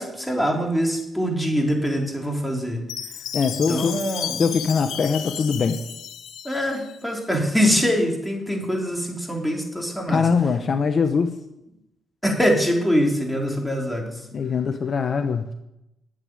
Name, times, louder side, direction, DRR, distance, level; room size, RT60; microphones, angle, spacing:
voice 1, 0.0-2.8 3.5-4.5 6.4-10.3 12.2-14.3, equal, 5° left, 0 dB, 3.5 m, -24 dB
Chime, 2.9-7.0, left 9 dB, 75° left, 1.0 m, -33 dB
voice 2, 3.3-4.0 4.4-5.8 10.1-11.4 14.3-15.5, left 5 dB, 45° left, 8 dB, 0.9 m, -22 dB
11.5 x 8.2 x 9.6 m, 0.88 s
cardioid pair, 90°, 0 cm